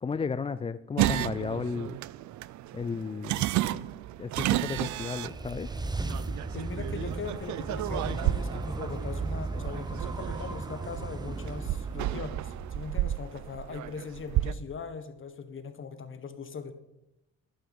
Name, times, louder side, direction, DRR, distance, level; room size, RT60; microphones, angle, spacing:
voice 1, 0.0-2.0 2.7-3.5 4.2-5.7, left 5 dB, 20° left, 13 dB, 0.3 m, -33 dB
sound 1, 1.0-14.5, right 14 dB, 70° right, 0.5 m, -32 dB
sound 2, 4.6-13.5, right 3 dB, 15° right, 0.8 m, -36 dB
voice 2, 6.5-16.7, left 5 dB, 40° left, 9 dB, 1.4 m, -40 dB
11.5 x 9.0 x 5.4 m, 0.92 s
cardioid pair, 90°, 30 cm